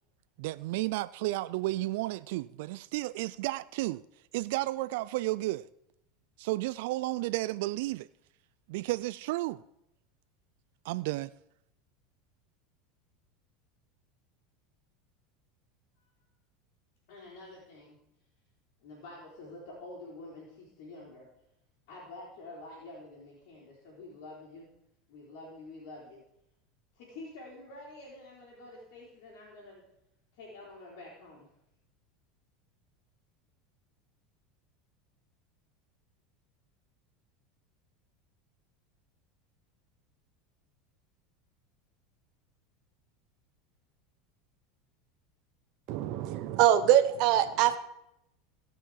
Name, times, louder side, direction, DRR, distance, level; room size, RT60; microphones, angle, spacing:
voice 1, 0.4-4.0 4.3-5.7 6.4-8.1 8.7-9.6 10.8-11.3, right 18 dB, 70° right, 0.3 m, -32 dB
voice 2, 17.1-18.0 18.8-21.3 21.9-24.7 25.1-26.2 27.0-29.8 30.3-31.5, left 2 dB, 65° left, 3.6 m, -48 dB
voice 3, 45.9-47.8, right 11 dB, 55° right, 0.9 m, -24 dB
17.0 x 5.8 x 4.8 m
supercardioid pair, 120°, 0 cm